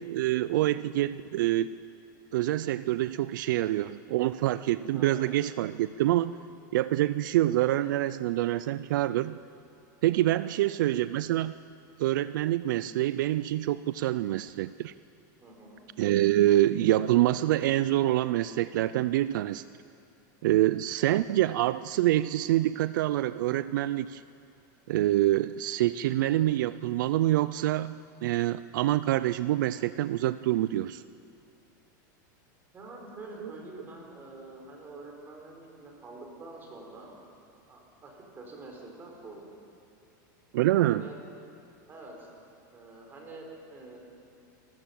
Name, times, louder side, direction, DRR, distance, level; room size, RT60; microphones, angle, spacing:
voice 1, 0.0-1.8 2.3-6.3 6.7-9.4 10.0-11.5 12.0-14.9 16.0-19.6 20.4-24.2 24.9-31.0 33.4-33.5 40.5-41.0, right 14 dB, 75° right, 15 dB, 0.4 m, -26 dB
voice 2, 10.4-10.8 15.4-15.8 32.7-37.1 37.7-39.5 40.8-41.2 41.9-42.3 42.7-44.0, right 2 dB, 20° right, 0 dB, 4.1 m, -46 dB
27.5 x 13.5 x 7.6 m, 2.6 s
supercardioid pair, 160°, 11 cm